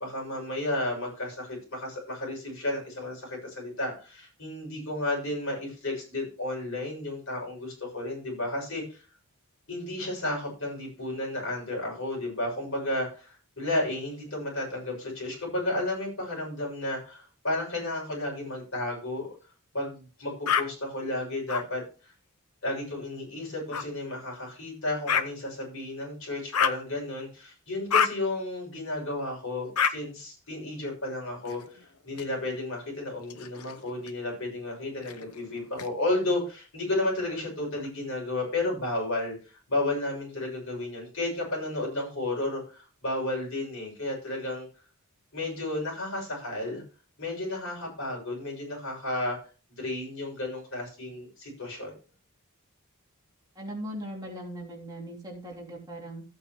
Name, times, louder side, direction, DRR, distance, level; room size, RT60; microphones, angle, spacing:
voice 1, 0.0-9.0 9.7-19.3 19.7-22.1 22.6-44.7 45.3-46.8 47.2-49.4 49.7-51.9, left 2 dB, 60° left, -1 dB, 6.6 m, -32 dB
sound 1, 20.4-20.6 21.5-21.6 23.7-23.8 25.1-25.2 26.5-26.8 27.9-28.1 29.7-29.9 31.4-32.2 33.2-34.1 35.0-35.9, left 7 dB, 85° left, 0.7 m, -28 dB
voice 2, 53.5-56.2, right 1 dB, 20° right, -3 dB, 3.0 m, -39 dB
15.0 x 8.7 x 3.1 m, 0.35 s
head